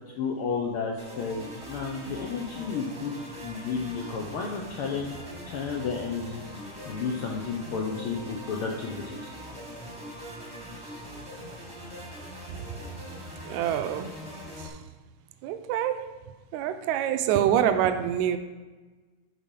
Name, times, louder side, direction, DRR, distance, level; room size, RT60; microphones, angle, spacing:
voice 1, 0.2-3.1 3.4-5.1 5.5-6.4 6.8-9.3, left 5 dB, 85° left, 0 dB, 1.2 m, -32 dB
sound 1, 1.0-14.7, equal, 20° right, 0.8 m, -42 dB
voice 2, 13.5-14.1 15.4-16.1 16.5-18.4, right 10 dB, 80° right, 9 dB, 1.9 m, -25 dB
10.0 x 4.1 x 5.3 m, 1.3 s
omnidirectional pair, 3.5 m